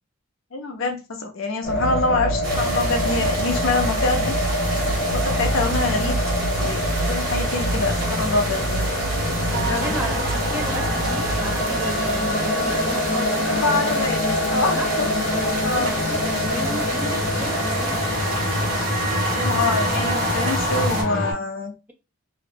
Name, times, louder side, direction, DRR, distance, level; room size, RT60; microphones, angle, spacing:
voice 1, 0.5-4.4 5.1-6.2 6.5-8.9 9.5-9.9 13.3-14.2 14.5-15.1 15.6-15.9 19.3-21.7, left 3 dB, 65° left, 0.5 m, -25 dB
sound 1, 1.6-21.3, left 1 dB, 50° left, 0.9 m, -25 dB
sound 2, 2.4-21.0, right 1 dB, 40° right, 1.3 m, -29 dB
sound 3, 9.5-20.9, right 3 dB, 80° right, 0.6 m, -32 dB
voice 2, 9.8-13.8 14.7-14.9 15.3-18.1, equal, 10° right, 0.4 m, -34 dB
2.6 x 2.1 x 2.6 m
head